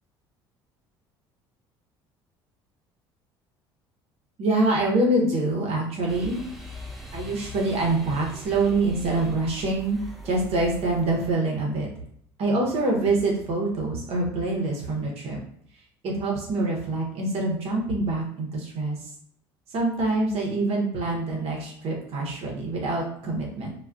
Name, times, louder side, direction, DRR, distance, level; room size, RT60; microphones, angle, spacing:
voice 1, 4.4-6.4 7.1-11.9 12.4-15.4 16.0-19.0 19.7-23.7, right 2 dB, 55° right, -1 dB, 0.9 m, -25 dB
sound 1, 6.1-11.3, left 1 dB, ahead, 0.6 m, -41 dB
2.3 x 2.3 x 2.3 m, 0.65 s
hypercardioid pair, 70°, 12 cm